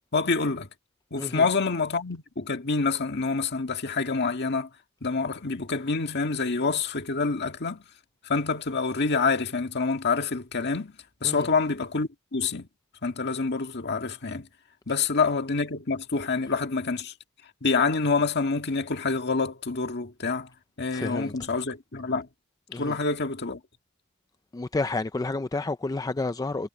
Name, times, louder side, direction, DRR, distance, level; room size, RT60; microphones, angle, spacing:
voice 1, 0.1-0.7 1.1-4.7 5.0-7.8 8.3-10.9 11.2-12.7 13.0-14.5 14.9-17.1 17.6-20.5 20.8-22.3 22.7-23.6, left 4 dB, 55° left, 1.8 m, -27 dB
voice 2, 20.9-21.3 22.7-23.0 24.5-26.7, left 3 dB, 15° left, 0.4 m, -30 dB
head